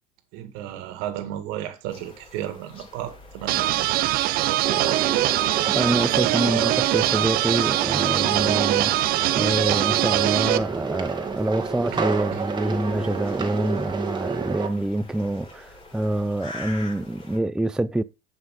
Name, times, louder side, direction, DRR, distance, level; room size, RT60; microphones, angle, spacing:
voice 1, 0.3-5.1 11.9-12.4, right 12 dB, 75° right, 1.9 m, -34 dB
sound 1, 1.9-17.4, left 2 dB, 35° left, 7.1 m, -46 dB
sound 2, 3.5-10.6, right 15 dB, 55° right, 0.7 m, -22 dB
sound 3, 4.6-14.7, right 5 dB, 25° right, 1.9 m, -30 dB
voice 2, 5.7-18.0, right 1 dB, 5° right, 0.4 m, -26 dB
11.0 x 5.6 x 5.2 m
supercardioid pair, 100°, 18 cm